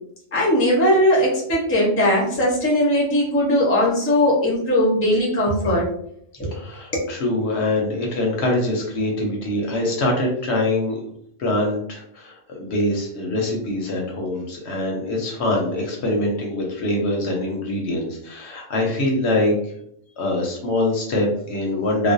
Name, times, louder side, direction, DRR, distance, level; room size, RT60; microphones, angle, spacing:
voice 1, 0.3-5.9 6.4-6.6 6.9-7.1, left 1 dB, 20° left, -4 dB, 0.4 m, -19 dB
voice 2, 6.5-11.0 11.4-19.5 20.2-22.1, left 1 dB, 65° left, 0 dB, 0.7 m, -24 dB
2.4 x 2.0 x 2.5 m, 0.69 s
omnidirectional pair, 1.4 m